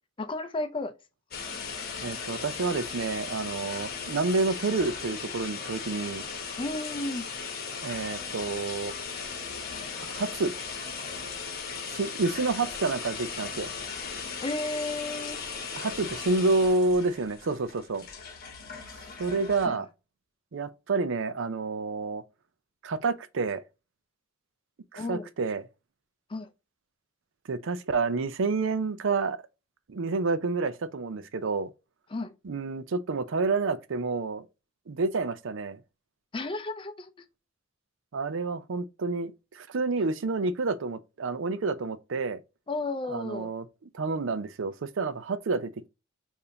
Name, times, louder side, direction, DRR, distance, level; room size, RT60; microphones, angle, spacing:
voice 1, 0.2-0.9 6.6-7.3 14.4-15.4 19.7-19.8 24.9-25.3 26.3-26.5 32.1-32.3 36.3-37.1 42.7-43.5, left 2 dB, 25° left, 0.5 m, -33 dB
sound 1, 1.3-19.7, left 5 dB, 50° left, 1.0 m, -37 dB
voice 2, 2.0-6.3 7.8-8.9 10.0-10.5 11.9-13.7 15.7-18.1 18.9-19.9 20.5-22.2 22.8-23.6 24.9-25.6 27.5-29.4 29.9-31.7 32.4-34.4 34.9-35.8 38.1-42.4 43.1-43.6 43.9-45.9, right 3 dB, 70° right, 0.5 m, -29 dB
6.8 x 2.7 x 2.7 m
head